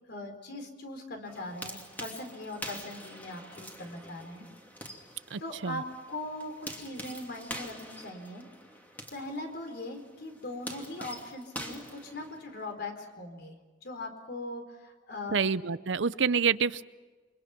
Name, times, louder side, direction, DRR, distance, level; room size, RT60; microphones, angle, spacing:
voice 1, 0.1-4.4 5.4-8.4 9.1-13.5 13.8-15.5, left 2 dB, 55° left, 5 dB, 4.4 m, -40 dB
sound 1, 1.2-12.7, equal, 10° left, 2.8 m, -45 dB
voice 2, 5.3-5.8 15.3-16.8, right 6 dB, 65° right, 16 dB, 0.6 m, -27 dB
29.0 x 24.5 x 6.0 m, 1.4 s
head